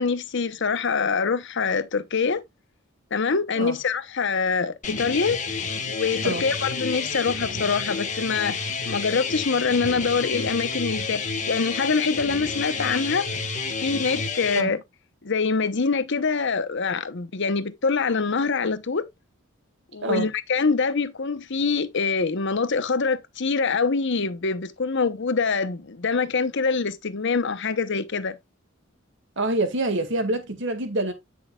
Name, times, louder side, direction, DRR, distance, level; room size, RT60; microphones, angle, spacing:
voice 1, 0.0-2.4 3.1-5.4 5.8-13.3 13.8-14.8 15.2-19.0 19.9-28.4, left 4 dB, 60° left, 0.9 m, -25 dB
sound 1, 4.8-14.6, left 4 dB, 40° left, 1.6 m, -30 dB
voice 2, 29.4-31.1, right 2 dB, 60° right, 2.1 m, -26 dB
9.7 x 6.4 x 2.4 m
head